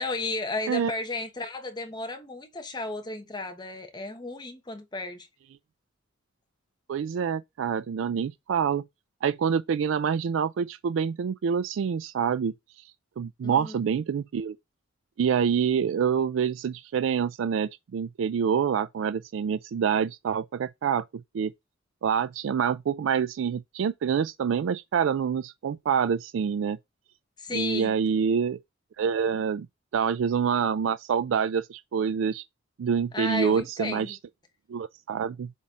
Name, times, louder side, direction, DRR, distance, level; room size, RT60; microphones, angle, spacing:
voice 1, 0.0-5.3 13.4-13.8 27.4-27.9 33.1-34.2, left 2 dB, 20° left, 1.0 m, -33 dB
voice 2, 6.9-8.8 9.2-14.6 15.2-21.1 21.3-21.5 22.0-26.8 27.5-28.6 29.0-29.7 29.9-32.4 32.8-34.2 34.7-35.5, right 7 dB, 75° right, 0.3 m, -26 dB
7.3 x 4.2 x 3.7 m
head